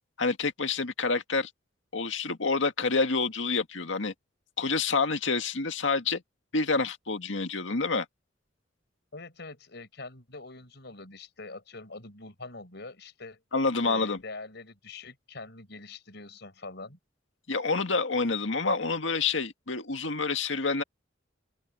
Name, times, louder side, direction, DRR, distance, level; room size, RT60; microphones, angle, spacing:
voice 1, 0.2-1.5 1.9-4.1 4.6-6.2 6.5-8.1 13.5-14.2 17.5-20.8, left 4 dB, 85° left, 2.0 m, -28 dB
voice 2, 9.1-13.4 13.8-17.0, left 3 dB, 65° left, 6.1 m, -44 dB
open air
head